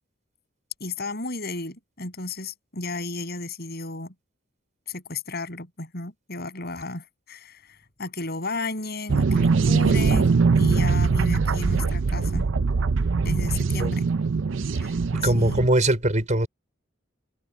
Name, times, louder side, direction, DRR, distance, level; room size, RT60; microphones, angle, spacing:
voice 1, 0.8-4.1 4.9-12.5 13.2-14.1 14.8-15.0 15.2-15.7, left 3 dB, 55° left, 7.7 m, -33 dB
sound 1, 9.1-15.7, right 4 dB, 70° right, 0.5 m, -22 dB
voice 2, 15.2-16.5, right 1 dB, 40° right, 4.7 m, -21 dB
head